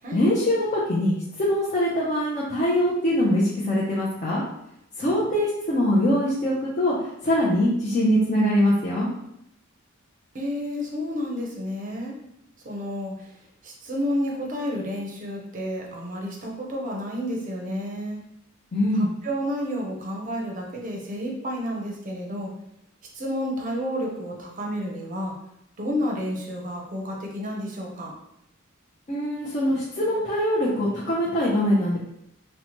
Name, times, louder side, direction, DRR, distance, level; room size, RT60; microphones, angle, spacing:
voice 1, 0.1-4.4 5.0-9.1 18.7-19.1 29.1-32.0, equal, 35° left, -7 dB, 0.5 m, -23 dB
voice 2, 10.3-12.2 12.6-13.4 13.6-18.2 18.9-22.5 23.1-25.3 25.8-28.1, equal, 40° right, -1 dB, 0.5 m, -30 dB
2.8 x 2.1 x 2.9 m, 0.81 s
head